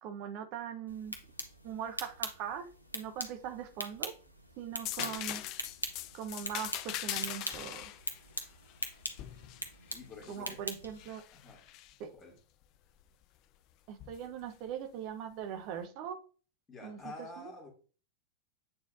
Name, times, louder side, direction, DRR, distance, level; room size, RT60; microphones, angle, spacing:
voice 1, 0.0-1.2 1.6-2.7 2.9-4.1 4.6-5.4 6.1-7.8 10.3-11.2 12.0-12.1 13.9-16.2 16.8-17.0 17.4-17.5, right 8 dB, 45° right, 1.0 m, -41 dB
sound 1, 0.9-11.0, equal, 85° left, 1.0 m, -43 dB
sound 2, 4.8-10.4 11.0-11.9 14.0-14.2, left 13 dB, 40° left, 0.5 m, -41 dB
voice 2, 9.9-10.6 11.3-11.6 12.1-12.4 16.7-17.7, left 3 dB, 20° left, 2.5 m, -48 dB
8.6 x 4.4 x 2.7 m
figure-of-eight pair, 90°, 0 cm